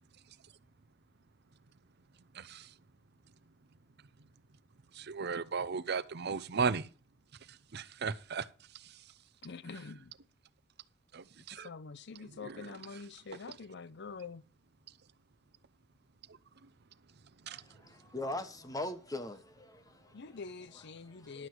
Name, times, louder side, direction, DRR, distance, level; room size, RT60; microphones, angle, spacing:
voice 1, 2.3-2.7 4.9-6.9 7.4-9.1 9.7-9.8 11.1-11.7 12.2-13.0 16.3-16.7 17.2-17.9, right 5 dB, 55° right, 0.7 m, -38 dB
voice 2, 9.4-10.1 11.5-14.4 20.1-21.5, left 4 dB, 60° left, 0.6 m, -46 dB
voice 3, 17.5-20.4 20.7-21.5, left 1 dB, 20° left, 1.2 m, -42 dB
11.5 x 8.0 x 4.6 m
head